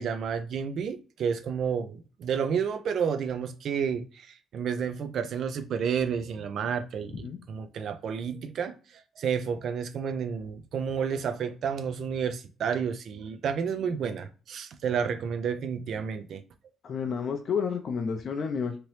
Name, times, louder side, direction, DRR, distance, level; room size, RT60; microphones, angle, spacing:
voice 1, 0.0-16.4, right 7 dB, 65° right, 0.3 m, -31 dB
voice 2, 16.8-18.8, left 6 dB, 55° left, 0.4 m, -30 dB
2.9 x 2.8 x 3.1 m
cardioid pair, 100°, 0 cm